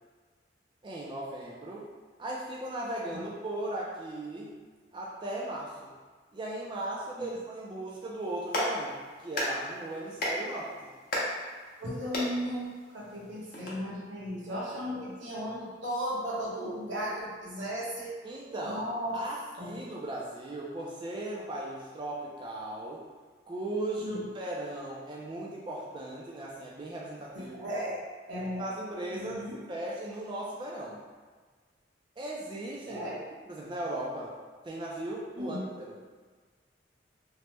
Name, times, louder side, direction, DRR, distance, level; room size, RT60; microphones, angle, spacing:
voice 1, 0.8-1.9 2.2-4.6 4.9-5.9 6.3-9.0 9.2-10.9 15.0-15.5 18.2-18.9 19.1-23.0 23.5-27.7 28.6-31.0 32.2-33.1 33.5-34.3 34.6-36.0, right 1 dB, 25° right, -4 dB, 0.3 m, -37 dB
Clapping, 8.2-13.7, left 1 dB, 50° left, 0.7 m, -36 dB
voice 2, 11.8-18.2 18.6-19.2 19.6-19.8 24.0-24.3 27.3-28.0 28.3-28.6 29.1-29.6 32.9-33.2 35.4-35.7, equal, 90° right, -7 dB, 1.0 m, -35 dB
2.9 x 2.0 x 3.2 m, 1.5 s
head